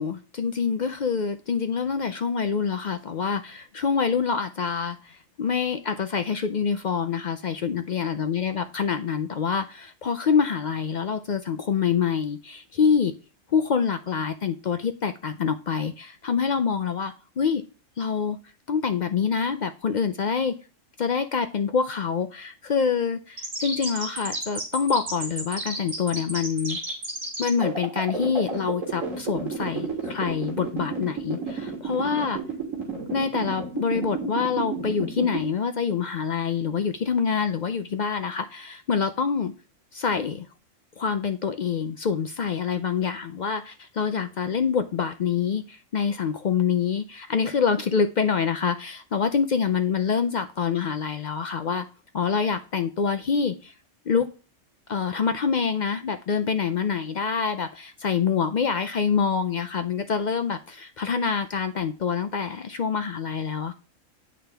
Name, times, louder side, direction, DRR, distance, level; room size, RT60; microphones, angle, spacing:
voice 1, 0.0-13.1 13.5-17.6 18.0-18.4 18.7-20.5 21.0-26.8 27.4-32.4 33.1-39.5 39.9-40.5 41.0-51.8 52.1-53.7 54.1-54.3 54.9-63.7, left 6 dB, 65° left, 9 dB, 0.4 m, -26 dB
sound 1, 23.4-35.4, right 4 dB, 85° right, 2.6 m, -31 dB
8.7 x 6.1 x 3.4 m, 0.35 s
omnidirectional pair, 1.3 m